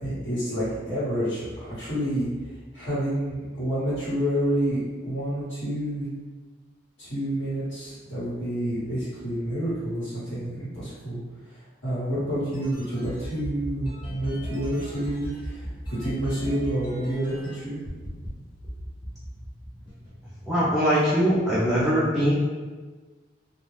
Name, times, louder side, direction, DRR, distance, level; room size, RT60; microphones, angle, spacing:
voice 1, 0.0-2.3 2.7-6.1 7.0-11.2 11.5-17.8, right 1 dB, 75° left, -13 dB, 1.3 m, -29 dB
sound 1, 12.1-17.5 17.8-18.3 18.6-20.1, equal, 25° left, 0.9 m, -37 dB
voice 2, 20.4-22.3, equal, ahead, -11 dB, 0.4 m, -22 dB
2.3 x 2.1 x 3.2 m, 1.3 s
head